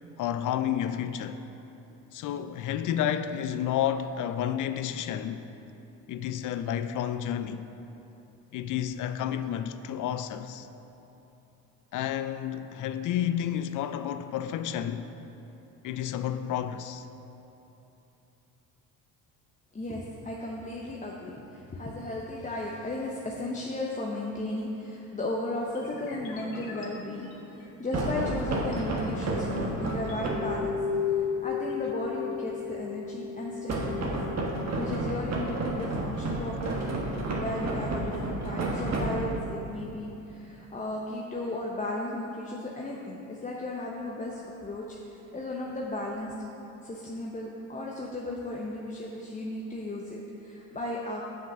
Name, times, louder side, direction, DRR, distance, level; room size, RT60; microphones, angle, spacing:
voice 1, 0.2-1.4 2.1-5.4 6.1-7.6 8.5-10.7 11.9-15.1 15.8-17.1, left 10 dB, 45° left, 0.5 m, -31 dB
voice 2, 19.7-30.8 31.0-34.1 34.7-37.0 37.3-46.3 46.8-51.2, left 1 dB, 20° left, 0.9 m, -35 dB
sound 1, 25.7-28.8 29.3-30.3, left 2 dB, 80° left, 1.4 m, -46 dB
sound 2, 27.9-30.6 33.7-39.6, right 2 dB, 40° right, 1.6 m, -31 dB
sound 3, 29.2-34.9, left 7 dB, 20° right, 1.2 m, -34 dB
7.4 x 6.0 x 5.4 m
hypercardioid pair, 65°, 42 cm